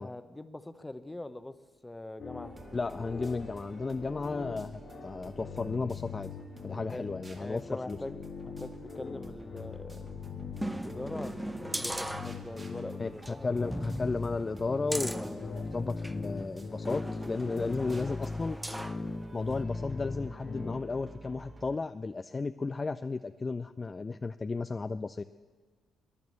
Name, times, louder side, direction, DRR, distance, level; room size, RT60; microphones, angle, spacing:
voice 1, 0.0-1.6 1.8-2.6 6.9-7.1 7.4-10.2 10.6-13.7, left 2 dB, 15° left, 12 dB, 0.9 m, -43 dB
sound 1, 2.2-20.7, left 4 dB, 55° left, 1.2 m, -41 dB
sound 2, 2.4-21.8, right 3 dB, 35° right, 2.1 m, -51 dB
voice 2, 2.7-6.3 6.6-8.0 13.0-18.6 19.3-25.2, left 4 dB, 35° left, 11 dB, 0.4 m, -34 dB
sound 3, 10.6-12.8 13.2-13.3 13.7-16.2 16.8-19.0 19.5-19.6, right 1 dB, 5° right, 0.7 m, -38 dB
14.0 x 10.5 x 7.2 m, 1.4 s
hypercardioid pair, 45°, 0 cm